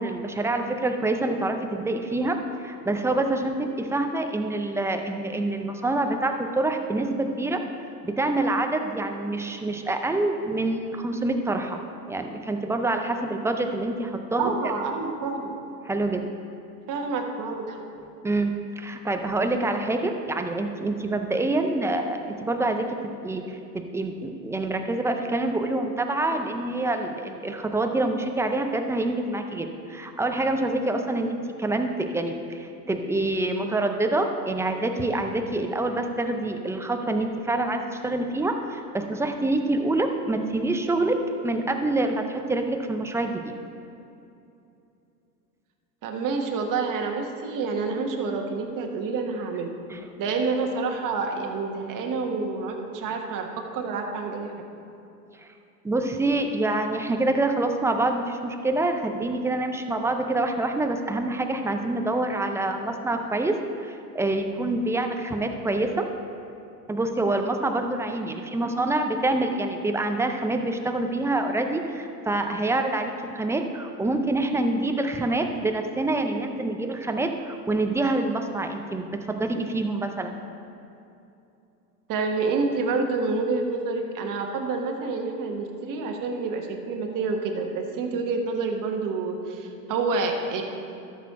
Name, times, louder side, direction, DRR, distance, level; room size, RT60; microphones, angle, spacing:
voice 1, 0.0-7.6 8.0-11.8 12.1-14.5 15.8-16.3 18.2-23.0 23.2-43.5 49.9-50.0 55.8-66.1 66.9-80.4, right 2 dB, 5° right, 5 dB, 0.4 m, -26 dB
voice 2, 14.4-15.6 16.9-17.8 46.0-49.7 50.2-53.5 53.7-54.5 68.6-68.8 82.1-90.6, right 4 dB, 40° right, 2 dB, 1.5 m, -28 dB
12.5 x 6.5 x 4.2 m, 2.7 s
hypercardioid pair, 90°, 50 cm